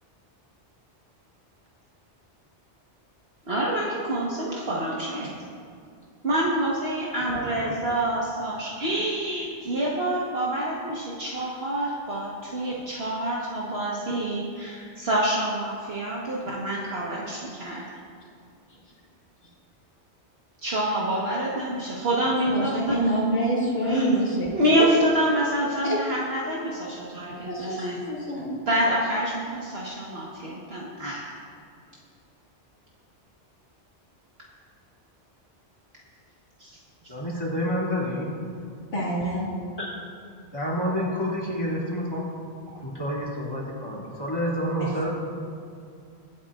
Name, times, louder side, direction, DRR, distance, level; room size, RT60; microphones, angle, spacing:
voice 1, 3.5-5.3 6.2-17.8 20.6-23.0 23.8-24.0 24.5-28.0 28.7-31.3 36.6-36.7, right 1 dB, 60° right, -6 dB, 1.6 m, -27 dB
voice 2, 22.5-24.9 25.8-26.0 27.4-28.6 38.9-39.5 44.8-45.1, equal, 80° left, -7 dB, 2.7 m, -27 dB
voice 3, 37.1-38.3 39.8-40.0 40.5-42.3 42.7-45.1, equal, 20° left, -6 dB, 2.7 m, -28 dB
24.5 x 8.8 x 2.5 m, 2.3 s
omnidirectional pair, 1.2 m